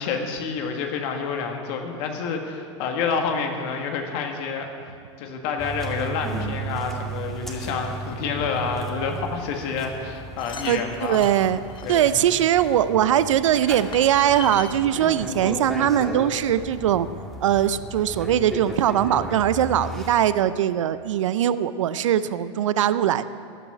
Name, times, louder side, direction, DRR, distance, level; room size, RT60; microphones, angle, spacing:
voice 1, 0.0-4.9 5.2-11.3 11.8-12.2, left 5 dB, 60° left, 3 dB, 1.7 m, -28 dB
sound 1, 5.6-20.1, right 1 dB, 5° left, 2.2 m, -35 dB
sound 2, 10.1-12.8 13.6-13.7 13.9-14.8 15.6-15.7 15.9-16.0, left 6 dB, 30° left, 1.1 m, -40 dB
voice 2, 10.7-11.6 11.9-17.1 17.4-23.3, right 10 dB, 85° right, 14 dB, 0.5 m, -21 dB
15.0 x 6.3 x 9.8 m, 2.4 s
hypercardioid pair, 100°, 16 cm